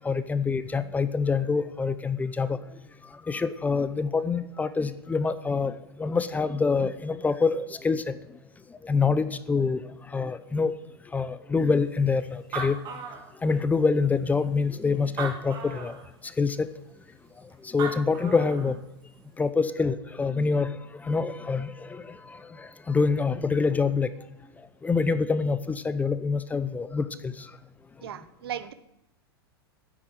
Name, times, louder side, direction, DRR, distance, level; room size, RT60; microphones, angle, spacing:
voice 1, 0.0-2.6 3.3-5.7 6.0-8.1 8.8-9.8 10.1-10.7 11.1-12.8 13.4-15.9 16.4-16.7 17.7-18.8 19.4-20.8 21.0-22.0 22.6-24.1 24.8-27.3, left 4 dB, 10° left, 13 dB, 0.7 m, -26 dB
Animal, 12.1-12.2 12.3-13.8 14.4-14.5 15.0-16.0 17.5-17.6 17.8-18.7, right 5 dB, 35° right, 2.7 m, -36 dB
voice 2, 28.0-28.7, right 9 dB, 70° right, 13 dB, 1.1 m, -36 dB
9.9 x 7.9 x 9.2 m, 0.81 s
hypercardioid pair, 110°, 13 cm